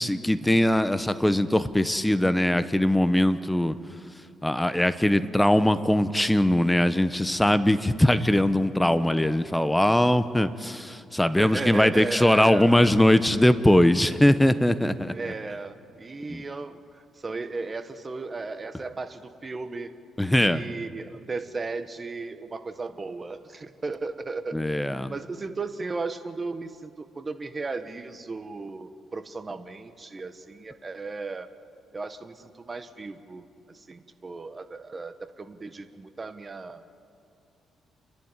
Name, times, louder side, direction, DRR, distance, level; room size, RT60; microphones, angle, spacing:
voice 1, 0.0-3.8 4.4-15.3 16.3-16.4 20.2-20.6 24.5-25.1, left 1 dB, 5° left, 13 dB, 1.0 m, -21 dB
voice 2, 11.4-12.8 15.1-19.9 20.4-24.6 25.1-31.5 31.9-36.8, right 3 dB, 30° right, 10 dB, 1.4 m, -35 dB
30.0 x 11.5 x 9.7 m, 2.4 s
cardioid pair, 90°, 0 cm